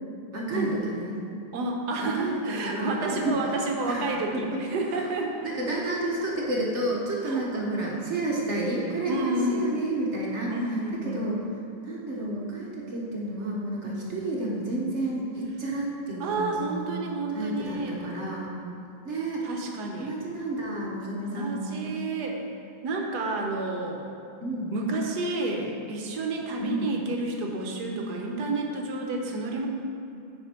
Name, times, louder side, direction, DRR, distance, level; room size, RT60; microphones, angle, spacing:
voice 1, 0.3-1.2 2.0-3.4 3.9-4.6 4.9-5.1 5.4-10.6 11.0-11.4 11.8-16.8 17.3-18.5 19.0-19.5 20.0-21.9 24.4-24.7 26.6-27.0, right 2 dB, 45° right, -3 dB, 0.9 m, -30 dB
voice 2, 1.5-5.5 7.2-7.4 9.1-9.7 10.5-11.3 13.8-13.9 16.2-18.0 19.4-20.1 21.2-22.4 22.8-24.0 24.7-29.7, right 2 dB, 65° right, 1 dB, 1.1 m, -30 dB
9.6 x 5.1 x 4.3 m, 2.6 s
omnidirectional pair, 2.2 m